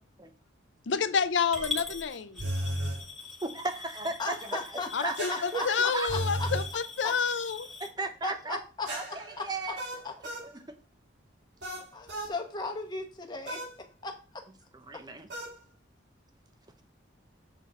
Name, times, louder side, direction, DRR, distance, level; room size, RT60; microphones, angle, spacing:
voice 1, 0.9-2.4 4.9-7.7, left 6 dB, 75° left, 12 dB, 0.6 m, -29 dB
Coin (dropping) / Glass, 1.5-7.9, left 4 dB, ahead, 1.3 m, -42 dB
sound 1, 2.4-3.0 5.2-6.7 8.9-10.5 11.6-12.4 13.5-13.8 15.3-15.6, right 1 dB, 65° right, 1.6 m, -35 dB
voice 2, 3.4-4.6 5.0-6.1 7.8-8.6 8.9-9.8 10.4-10.6 14.7-15.3, right 3 dB, 20° right, 7 dB, 0.7 m, -35 dB
voice 3, 4.2-6.5 7.0-7.1 8.2-8.9 9.4-9.7 10.0-10.1 11.8-13.6 14.0-14.4, left 3 dB, 25° left, 3 dB, 1.0 m, -36 dB
7.1 x 3.9 x 4.2 m, 0.35 s
head